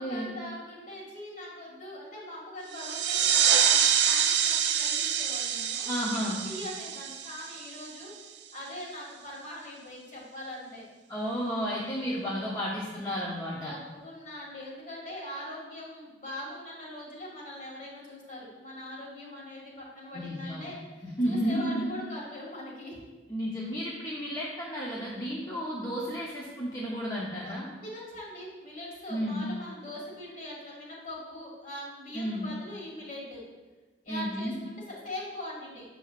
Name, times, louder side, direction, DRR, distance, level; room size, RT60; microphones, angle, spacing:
voice 1, 0.0-8.1 8.5-10.8 13.7-23.0 25.3-25.5 27.4-27.6 27.8-33.4 34.0-35.8, left 1 dB, 50° left, -5 dB, 2.0 m, -42 dB
sound 1, 2.7-8.0, right 8 dB, 85° right, 0.4 m, -26 dB
voice 2, 5.9-6.4 11.1-13.7 20.1-20.6 21.0-21.9 23.3-27.7 29.1-29.5 32.1-32.5 34.1-34.5, equal, 20° left, -5 dB, 0.7 m, -32 dB
7.6 x 5.7 x 2.4 m, 1.2 s
head